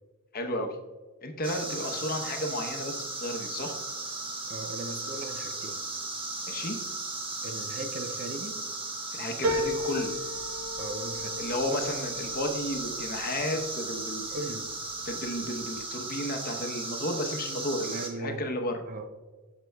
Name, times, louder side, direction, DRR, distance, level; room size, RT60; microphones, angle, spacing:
voice 1, 0.3-0.8 1.2-3.8 6.5-6.8 9.1-10.1 11.4-14.2 15.1-18.8, left 1 dB, 45° left, 0.9 m, -33 dB
sound 1, 1.4-18.1, right 2 dB, 25° right, 1.1 m, -36 dB
voice 2, 4.5-5.8 7.4-8.6 10.8-11.5 14.3-14.7 17.9-18.5 18.9-19.1, right 2 dB, 40° right, 0.5 m, -38 dB
sound 2, 9.4-14.2 14.7-15.4 15.7-15.8, left 1 dB, 65° right, 0.9 m, -35 dB
11.5 x 6.0 x 2.3 m
head